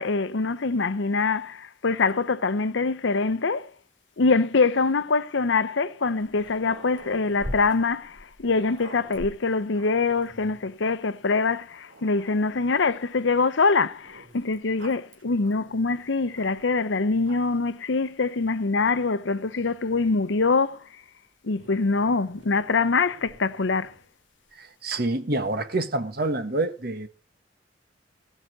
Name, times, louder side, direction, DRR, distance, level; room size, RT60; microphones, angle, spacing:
voice 1, 0.0-3.7 4.2-20.8 21.4-23.9, left 4 dB, 70° left, 0.7 m, -24 dB
Growling, 6.2-10.7 11.4-11.5 11.9-13.0 14.0-16.9 17.2-17.7 18.6-20.4 21.5-24.1, equal, 75° right, 2.8 m, -45 dB
voice 2, 24.5-27.1, right 2 dB, 55° right, 1.5 m, -27 dB
16.5 x 5.8 x 8.0 m
head